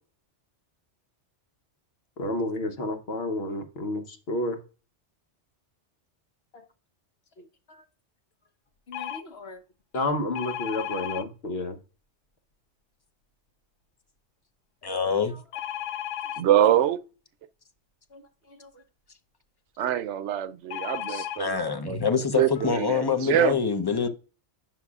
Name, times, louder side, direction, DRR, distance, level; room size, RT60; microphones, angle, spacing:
voice 1, 2.2-4.6 6.5-6.6 7.4-7.8 8.9-9.6 9.9-11.8 18.1-18.2 18.5-18.7, left 1 dB, 60° left, 1.2 m, -31 dB
sound 1, 8.9-9.2 10.3-11.2 15.5-16.4 20.7-21.4 22.2-22.3 22.5-22.7, left 11 dB, 85° left, 0.9 m, -34 dB
voice 2, 14.8-15.4 21.1-24.1, left 6 dB, 25° left, 0.6 m, -26 dB
voice 3, 16.4-17.0 19.8-22.0 22.4-23.6, right 11 dB, 75° right, 0.9 m, -24 dB
9.4 x 5.8 x 2.4 m
omnidirectional pair, 1.2 m